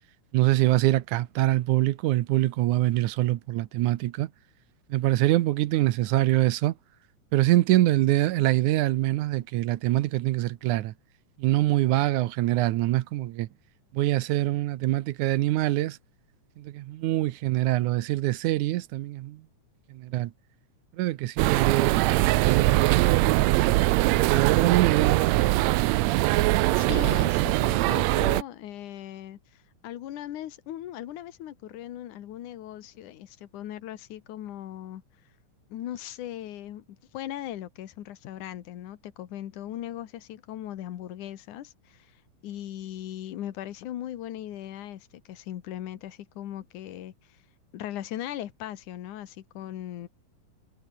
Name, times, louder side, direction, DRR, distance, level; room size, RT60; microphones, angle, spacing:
voice 1, 0.3-4.3 4.9-6.7 7.3-10.9 11.4-13.5 13.9-16.0 16.6-19.4 19.9-20.3 21.0-23.0 24.3-25.4, right 15 dB, 75° right, 2.2 m, -24 dB
sound 1, 21.4-28.4, right 18 dB, 90° right, 1.6 m, -22 dB
voice 2, 26.7-35.0 35.7-42.2 42.4-47.4 47.7-50.1, left 12 dB, 70° left, 2.9 m, -38 dB
omnidirectional pair, 3.7 m